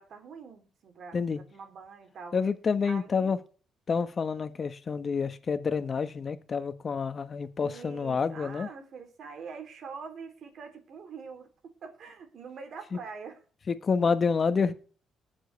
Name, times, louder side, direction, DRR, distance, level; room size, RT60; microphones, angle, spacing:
voice 1, 0.0-2.4 2.8-3.4 7.6-13.4, right 5 dB, 60° right, 3.4 m, -44 dB
voice 2, 2.3-3.4 3.9-8.7 13.7-14.7, left 5 dB, 40° left, 1.4 m, -28 dB
20.5 x 7.6 x 3.4 m
cardioid pair, 90°, 0 cm